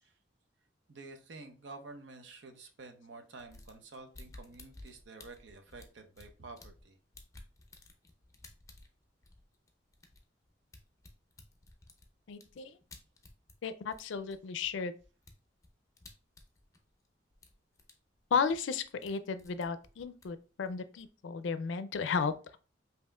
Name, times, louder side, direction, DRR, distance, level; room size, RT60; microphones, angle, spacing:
voice 1, 0.9-7.0, right 3 dB, 75° right, 5 dB, 0.7 m, -50 dB
sound 1, 3.4-6.9 7.1-13.6 13.9-17.1 17.3-17.9 18.2-19.1 19.4-21.1, left 2 dB, 15° left, 0.5 m, -55 dB
voice 2, 12.3-12.8 13.6-15.0 18.3-22.6, left 5 dB, 80° left, 12 dB, 0.4 m, -34 dB
5.4 x 2.8 x 2.3 m, 0.35 s
head